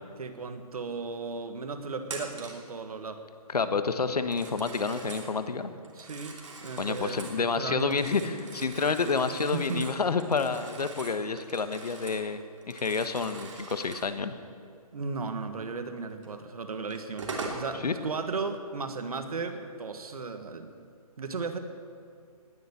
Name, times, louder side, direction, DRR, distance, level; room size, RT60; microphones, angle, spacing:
voice 1, 0.2-3.2 5.9-8.0 9.5-9.9 14.9-20.7 21.2-21.6, right 4 dB, 70° right, 8 dB, 1.7 m, -35 dB
Telephone, 2.0-2.7 4.2-5.3 5.8-7.4 7.8-12.3 12.6-14.1 16.2-16.3 16.9-17.7, right 3 dB, 50° right, 2.9 m, -42 dB
voice 2, 3.5-5.7 6.8-12.4 12.7-14.3 17.8-18.0, left 4 dB, 90° left, 10 dB, 1.3 m, -29 dB
19.0 x 7.2 x 9.8 m, 2.3 s
hypercardioid pair, 170°, 20 cm